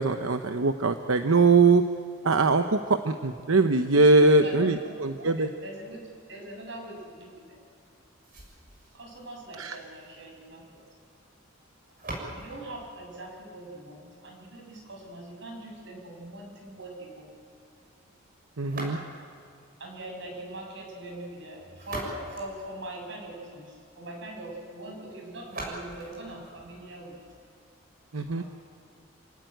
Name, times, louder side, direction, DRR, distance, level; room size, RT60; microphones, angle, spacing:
voice 1, 0.0-1.8 2.2-2.8 3.0-5.5 9.6-9.8 18.6-19.0 28.1-28.4, right 3 dB, 85° right, 7 dB, 0.9 m, -22 dB
voice 2, 3.9-7.6 8.9-10.8 12.3-17.3 19.8-27.2 28.1-28.4, right 1 dB, 60° right, 0 dB, 7.3 m, -42 dB
sound 1, 8.2-14.2 18.6-19.5 21.5-23.4 25.4-27.4, right 1 dB, 45° right, 7.0 m, -43 dB
28.0 x 17.5 x 9.2 m, 2.4 s
head